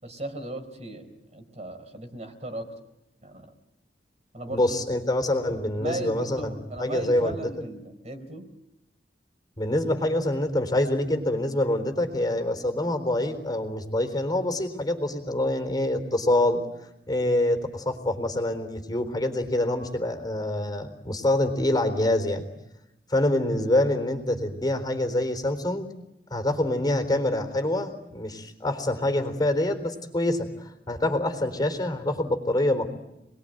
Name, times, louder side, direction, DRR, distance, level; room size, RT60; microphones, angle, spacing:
voice 1, 0.0-2.7 3.2-3.5 4.3-4.8 5.7-8.5, right 1 dB, 40° right, 7 dB, 4.2 m, -37 dB
voice 2, 4.5-7.4 9.6-16.6 17.1-22.4 23.1-25.9 26.3-30.5 30.9-33.0, left 1 dB, 25° left, 7 dB, 4.0 m, -26 dB
29.5 x 21.5 x 9.3 m, 0.90 s
head